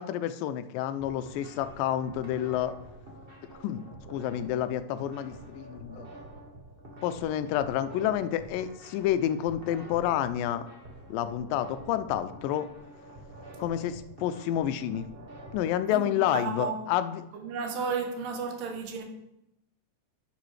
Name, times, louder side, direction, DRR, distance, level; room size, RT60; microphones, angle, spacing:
voice 1, 0.0-2.7 3.6-3.8 4.1-6.1 7.0-10.7 11.1-12.7 13.6-15.1 15.5-17.2, left 11 dB, 90° left, 2.2 m, -29 dB
sound 1, 1.0-15.6, right 1 dB, 30° right, 0.9 m, -47 dB
voice 2, 15.9-16.8 17.3-19.0, right 5 dB, 85° right, 2.8 m, -33 dB
10.5 x 6.7 x 3.2 m
omnidirectional pair, 3.8 m